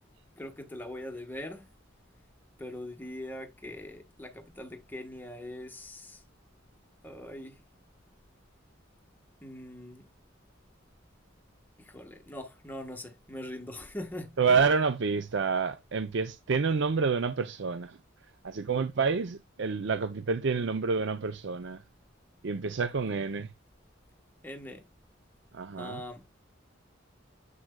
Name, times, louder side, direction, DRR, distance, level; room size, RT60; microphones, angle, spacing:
voice 1, 0.4-1.6 2.6-6.2 7.0-7.6 9.4-10.0 11.8-14.6 24.4-24.8 25.8-26.2, left 1 dB, 10° left, 1.2 m, -42 dB
voice 2, 14.4-18.0 18.4-21.8 22.4-23.5 25.5-26.0, right 5 dB, 60° right, 0.5 m, -28 dB
7.6 x 6.1 x 2.2 m
head